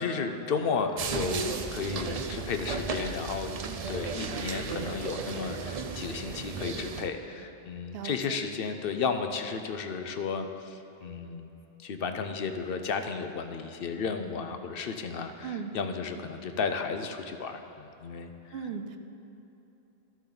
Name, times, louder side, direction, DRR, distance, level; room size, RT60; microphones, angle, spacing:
voice 1, 0.0-3.5 3.9-11.5 11.8-18.3, left 5 dB, 70° left, 7 dB, 0.8 m, -33 dB
sound 1, 1.0-7.1, right 5 dB, 50° right, 0.5 m, -34 dB
voice 2, 7.9-8.4 15.4-15.7 18.5-19.0, right 6 dB, 75° right, 7 dB, 0.9 m, -37 dB
13.5 x 7.3 x 3.9 m, 3.0 s
omnidirectional pair, 1.0 m